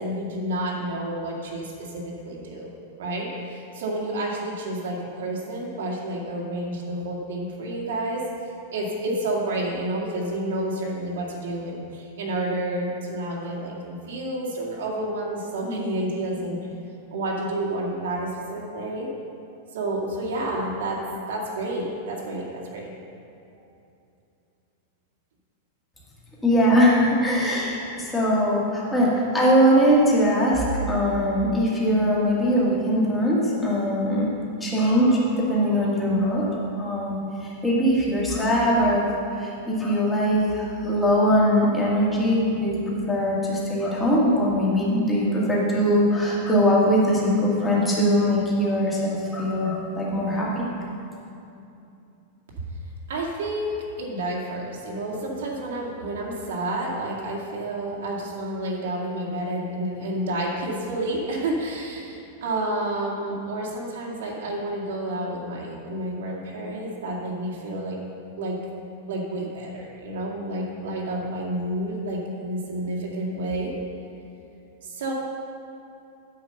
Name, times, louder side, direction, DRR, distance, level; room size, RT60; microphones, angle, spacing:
voice 1, 0.0-2.7 3.0-8.2 8.7-16.6 17.1-19.1 19.7-21.0 21.3-22.9 53.1-68.0 68.4-68.6 69.1-73.7 74.8-75.1, right 1 dB, 85° right, -3 dB, 2.2 m, -30 dB
voice 2, 26.4-39.1 39.4-50.7, equal, 5° left, -6 dB, 1.9 m, -21 dB
9.6 x 5.2 x 7.8 m, 2.7 s
supercardioid pair, 165°, 0 cm